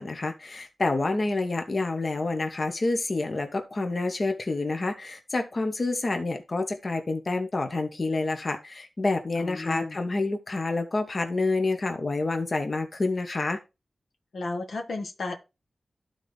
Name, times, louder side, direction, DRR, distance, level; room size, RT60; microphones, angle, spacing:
voice 1, 0.0-13.6, left 2 dB, 50° left, 1.2 m, -28 dB
voice 2, 9.4-10.0 14.3-15.4, left 3 dB, 80° left, 1.1 m, -33 dB
12.0 x 4.1 x 3.3 m
cardioid pair, 60°, 0 cm